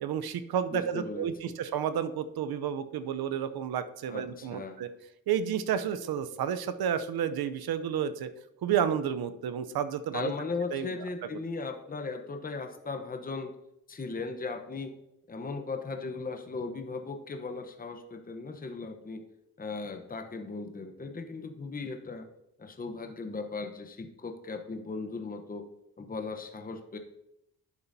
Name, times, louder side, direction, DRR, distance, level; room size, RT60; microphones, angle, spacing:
voice 1, 0.0-4.9 5.3-8.3 8.6-10.3 10.7-10.9, right 8 dB, 75° right, 11 dB, 0.7 m, -31 dB
voice 2, 0.7-1.3 4.1-4.8 10.1-13.5 13.9-15.0 15.3-19.2 19.6-22.2 22.6-25.7 26.0-27.0, left 4 dB, 25° left, 5 dB, 0.9 m, -37 dB
11.5 x 6.9 x 2.7 m, 0.84 s
cardioid pair, 80°, 37 cm